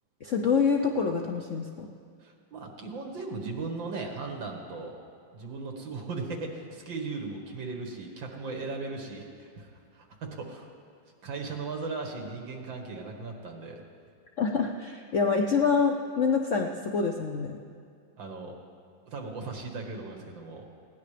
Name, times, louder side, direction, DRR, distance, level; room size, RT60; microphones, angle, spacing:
voice 1, 0.2-1.9 14.4-17.6, left 5 dB, 65° left, 2 dB, 0.7 m, -26 dB
voice 2, 2.2-5.0 5.3-10.7 11.2-13.8 15.4-15.5 18.2-18.6 19.1-20.6, right 3 dB, 70° right, 1 dB, 2.4 m, -37 dB
20.0 x 16.5 x 3.4 m, 2.2 s
omnidirectional pair, 2.1 m